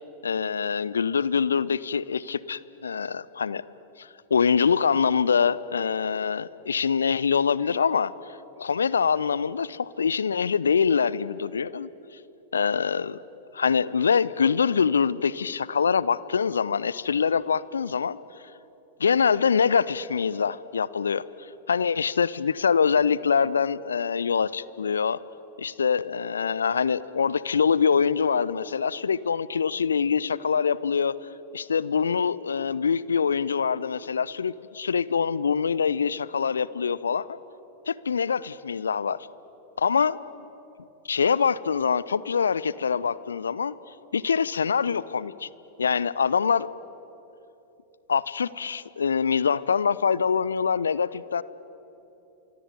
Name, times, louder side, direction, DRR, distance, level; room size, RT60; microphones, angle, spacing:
voice 1, 0.2-3.6 4.0-11.9 12.5-13.2 13.5-18.2 19.0-21.2 21.7-25.2 25.6-31.1 31.5-37.4 37.9-39.2 39.8-40.2 41.0-43.7 44.1-45.5 45.8-46.7 48.1-51.4, left 6 dB, 70° left, 19 dB, 0.7 m, -24 dB
25.0 x 23.5 x 9.5 m, 3.0 s
figure-of-eight pair, 90°, 0 cm